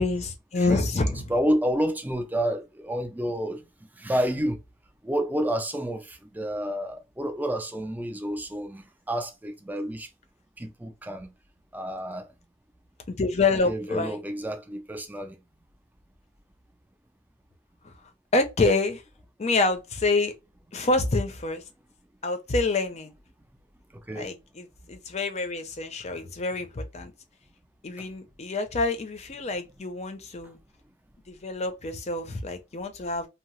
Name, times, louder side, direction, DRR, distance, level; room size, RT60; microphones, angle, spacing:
voice 1, 0.0-1.3 13.1-14.1 17.8-17.9 18.3-19.0 19.4-20.3 20.7-21.6 22.2-23.1 24.2-27.1 27.8-30.6 31.3-33.3, left 3 dB, 40° left, 0.6 m, -27 dB
voice 2, 0.7-4.6 5.0-10.1 10.6-11.3 11.7-12.3 13.7-15.4 23.9-24.3 28.0-28.1, equal, 10° right, 0.4 m, -30 dB
2.8 x 2.0 x 3.0 m
head